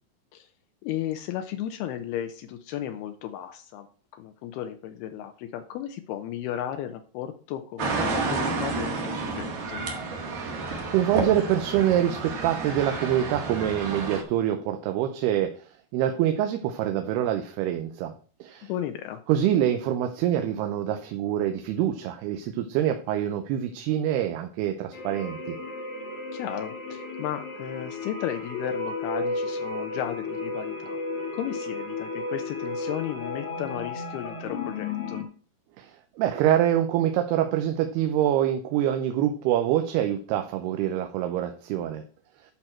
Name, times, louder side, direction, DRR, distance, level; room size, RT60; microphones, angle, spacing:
voice 1, 0.8-3.9 4.1-9.9 18.6-19.2 26.3-31.0 31.3-35.3, left 11 dB, 80° left, 7 dB, 2.6 m, -34 dB
sound 1, 7.8-14.2, right 3 dB, 60° right, 3.4 m, -30 dB
voice 2, 10.3-10.6 10.9-15.5 15.9-18.1 18.4-18.7 19.3-25.6 35.8-35.9 36.2-42.0, right 11 dB, 80° right, 6 dB, 2.7 m, -25 dB
sound 2, 24.9-35.2, left 3 dB, 50° left, 1.9 m, -33 dB
12.0 x 5.9 x 4.5 m, 0.41 s
omnidirectional pair, 4.7 m